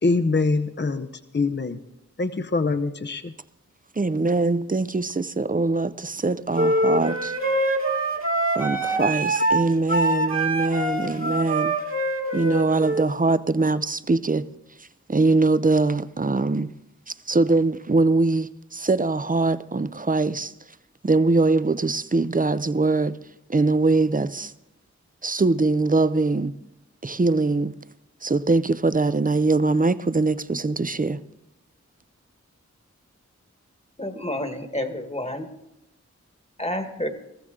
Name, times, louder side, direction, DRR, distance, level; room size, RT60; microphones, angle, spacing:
voice 1, 0.0-1.1 1.3-1.8 2.2-3.3, left 3 dB, 40° left, 0.7 m, -24 dB
voice 2, 4.0-7.3 8.5-11.7 12.3-14.4 15.1-16.7 17.1-20.5 21.0-23.2 23.5-24.5 25.2-26.5 27.0-27.7 28.2-31.2, right 3 dB, 30° right, 0.5 m, -22 dB
sound 1, 6.5-13.1, right 1 dB, 45° right, 1.9 m, -24 dB
voice 3, 34.0-35.5 36.6-37.1, left 1 dB, 20° left, 1.4 m, -29 dB
21.0 x 14.5 x 3.7 m
wide cardioid pair, 45°, 29 cm